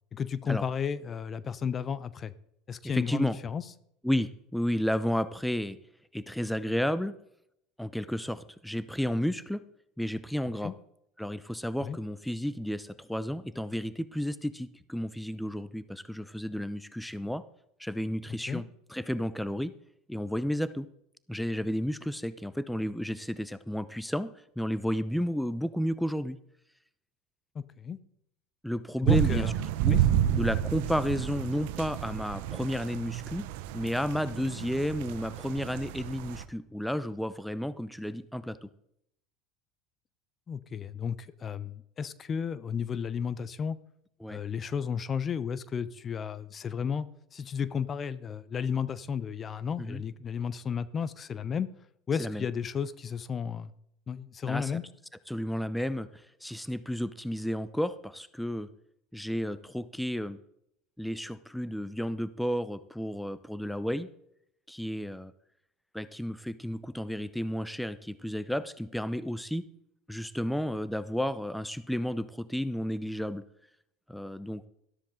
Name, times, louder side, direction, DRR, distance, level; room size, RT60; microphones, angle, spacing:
voice 1, 0.1-2.3 2.7-3.6 10.6-10.7 11.8-12.0 18.3-18.6 27.5-28.0 29.0-29.5 29.9-30.0 40.5-43.8 44.3-47.1 47.3-51.7 52.1-53.7 54.1-54.8, left 7 dB, 35° left, 17 dB, 0.8 m, -33 dB
voice 2, 2.9-3.4 4.0-5.8 6.1-7.2 7.8-9.6 10.0-10.7 11.2-17.4 17.8-19.7 20.1-20.9 21.3-26.4 28.6-29.5 29.8-30.1 30.3-33.5 33.7-38.7 44.2-44.4 49.8-50.0 52.2-52.4 54.4-54.8 55.3-58.7 59.1-60.4 61.0-64.1 64.7-65.3 65.9-69.7 70.1-73.4 74.1-74.7, equal, ahead, 15 dB, 0.7 m, -32 dB
sound 1, 29.1-36.4, right 11 dB, 70° right, 0.8 m, -30 dB
13.0 x 13.0 x 3.8 m, 0.76 s
hypercardioid pair, 80°, 0 cm